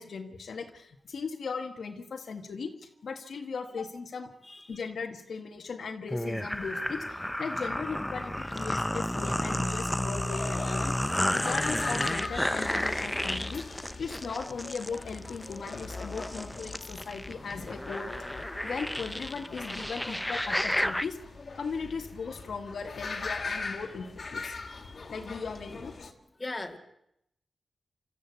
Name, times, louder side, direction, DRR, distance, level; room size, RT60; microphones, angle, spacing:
voice 1, 0.0-4.3 4.7-11.0 11.3-13.6 14.0-18.1 18.6-21.2 21.6-24.6 25.1-26.1, left 5 dB, 70° left, 5 dB, 1.8 m, -38 dB
voice 2, 4.5-4.8 24.7-25.0 26.4-26.8, left 2 dB, 25° left, 4 dB, 2.3 m, -39 dB
sound 1, 6.1-21.1, left 1 dB, 5° left, 0.7 m, -32 dB
sound 2, 10.0-26.1, left 4 dB, 45° left, 2.3 m, -41 dB
26.5 x 14.0 x 8.3 m, 0.78 s
wide cardioid pair, 100°, 0 cm